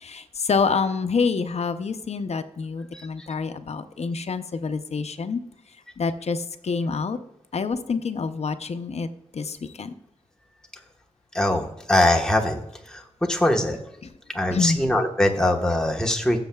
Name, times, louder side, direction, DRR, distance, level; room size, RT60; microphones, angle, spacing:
voice 1, 0.0-5.4 6.0-7.2 7.5-9.1 9.3-9.9 14.5-14.8, left 5 dB, 60° left, 10 dB, 0.6 m, -27 dB
voice 2, 11.3-12.6 12.9-13.0 13.3-13.8 14.3-16.5, left 1 dB, 5° left, 1 dB, 1.2 m, -22 dB
16.0 x 7.3 x 2.3 m, 0.83 s
wide cardioid pair, 105°, 12 cm